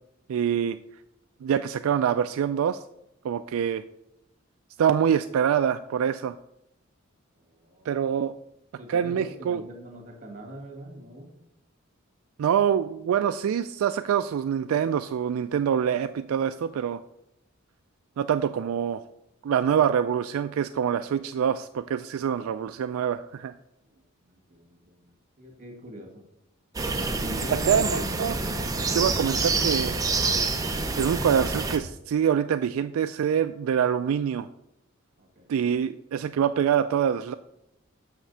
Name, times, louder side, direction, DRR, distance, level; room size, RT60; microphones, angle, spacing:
voice 1, 0.3-0.8 1.4-2.8 3.2-3.8 4.8-6.3 7.9-8.3 8.9-9.6 12.4-17.0 18.2-19.0 19.4-23.5 27.5-28.3 28.9-30.0 31.0-34.5 35.5-37.3, right 8 dB, 75° right, 10 dB, 0.3 m, -25 dB
voice 2, 7.4-8.1 8.8-11.3 23.9-25.1 25.4-26.2 27.2-28.2 35.2-35.6, equal, 40° right, 2 dB, 2.0 m, -43 dB
sound 1, 26.7-31.8, right 3 dB, 15° right, 0.6 m, -27 dB
6.6 x 5.9 x 5.5 m, 0.83 s
head